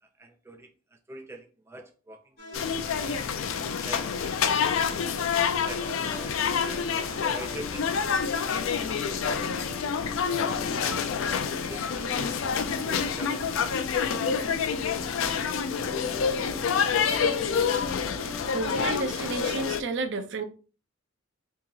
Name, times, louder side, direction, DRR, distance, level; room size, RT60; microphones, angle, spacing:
voice 1, 0.0-3.2 3.6-6.9 7.3-7.9 8.2-8.4 8.8-9.5 9.7-11.1 11.4-12.2 12.8-14.1 14.4-14.8, right 1 dB, 15° right, 0.3 m, -46 dB
sound 1, 2.4-19.6, left 2 dB, 55° left, 1.4 m, -43 dB
sound 2, 2.5-19.8, left 6 dB, 80° left, 0.4 m, -28 dB
voice 2, 18.5-20.4, right 3 dB, 65° right, 0.6 m, -31 dB
2.9 x 2.8 x 3.7 m
head